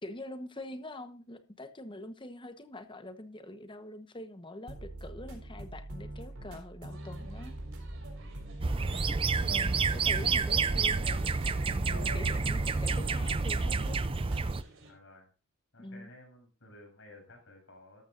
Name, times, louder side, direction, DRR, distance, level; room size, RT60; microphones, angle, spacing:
voice 1, 0.0-7.5 9.5-11.1 11.7-14.0 15.8-16.1, left 1 dB, 20° left, 10 dB, 1.1 m, -44 dB
sound 1, 4.7-14.5, right 1 dB, 80° right, 4.1 m, -43 dB
sound 2, 6.9-14.9, right 3 dB, 60° right, 4.0 m, -51 dB
sound 3, 8.6-14.6, right 4 dB, 25° right, 0.5 m, -29 dB
voice 2, 14.8-15.3 15.7-18.0, left 2 dB, 60° left, 2 dB, 7.6 m, -55 dB
13.5 x 13.0 x 2.6 m, 0.35 s
head